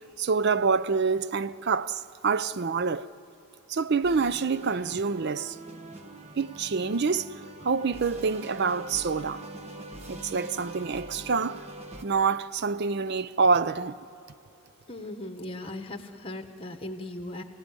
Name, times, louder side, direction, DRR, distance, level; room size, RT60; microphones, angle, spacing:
voice 1, 0.2-3.1 3.7-5.6 6.4-7.3 7.6-9.4 10.1-11.6 12.0-14.0, right 5 dB, 50° right, 0.5 m, -26 dB
sound 1, 4.0-12.0, right 2 dB, 30° right, 1.2 m, -44 dB
voice 2, 14.9-17.4, left 1 dB, 25° left, 1.3 m, -38 dB
29.0 x 16.5 x 9.7 m
head